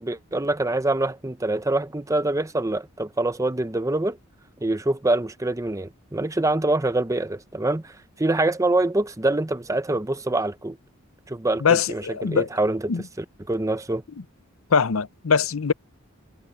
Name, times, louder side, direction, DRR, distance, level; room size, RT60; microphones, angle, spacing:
voice 1, 0.0-4.2 4.6-10.8 11.3-12.9 13.2-14.0, right 2 dB, 15° right, 0.7 m, -25 dB
voice 2, 11.6-12.5 12.9-13.0 14.7-15.7, left 6 dB, 70° left, 0.6 m, -22 dB
head